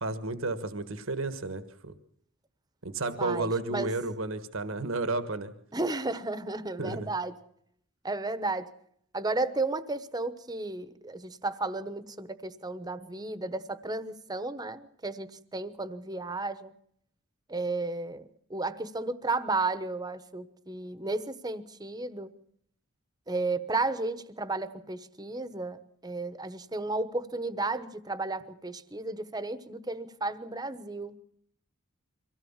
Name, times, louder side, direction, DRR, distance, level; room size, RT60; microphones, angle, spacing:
voice 1, 0.0-1.9 2.8-5.5 6.8-7.1, right 2 dB, 70° right, 11 dB, 1.4 m, -32 dB
voice 2, 3.2-3.9 5.7-7.4 8.0-8.7 9.1-16.7 17.5-22.3 23.3-31.2, right 3 dB, 20° right, 13 dB, 1.1 m, -33 dB
24.0 x 17.0 x 7.3 m, 0.69 s
head